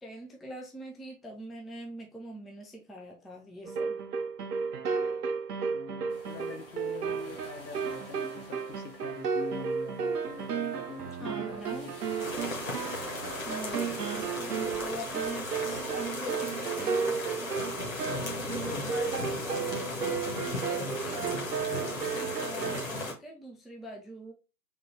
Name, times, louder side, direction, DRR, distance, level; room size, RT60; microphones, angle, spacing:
voice 1, 0.0-4.0 11.2-11.9 13.4-17.7 18.6-21.3 21.8-24.3, equal, ahead, 0.3 m, -43 dB
sound 1, 3.6-22.9, right 6 dB, 70° right, 0.7 m, -34 dB
voice 2, 5.7-11.9, left 6 dB, 80° left, 1.0 m, -44 dB
sound 2, 6.1-16.2, left 1 dB, 35° left, 0.8 m, -50 dB
sound 3, 12.2-23.1, left 2 dB, 55° left, 1.1 m, -36 dB
3.6 x 2.1 x 4.3 m
hypercardioid pair, 180°, 49 cm